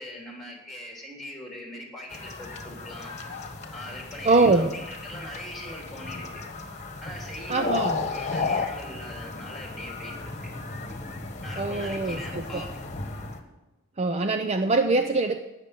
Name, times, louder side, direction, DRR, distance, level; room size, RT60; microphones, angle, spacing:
voice 1, 0.0-3.1 3.7-6.4 7.0-10.5 11.4-12.7, left 1 dB, ahead, -1 dB, 3.3 m, -41 dB
sound 1, 2.1-13.4, left 4 dB, 35° left, 1.5 m, -34 dB
voice 2, 4.2-4.7 7.5-8.0 11.6-12.6 14.0-15.4, right 3 dB, 30° right, 7 dB, 0.5 m, -23 dB
17.5 x 6.7 x 6.0 m, 1.1 s
head